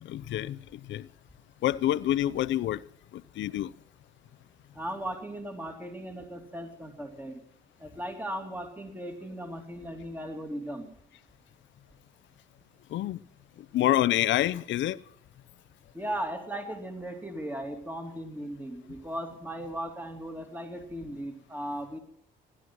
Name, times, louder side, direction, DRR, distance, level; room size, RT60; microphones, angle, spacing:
voice 1, 0.0-1.1 1.6-2.8 3.1-3.7 12.9-13.2 13.7-15.0, left 13 dB, 70° left, 0.6 m, -27 dB
voice 2, 4.7-7.4 7.8-10.9 15.9-22.0, right 1 dB, 10° right, 2.8 m, -37 dB
16.0 x 11.0 x 6.1 m
cardioid pair, 90°, 20 cm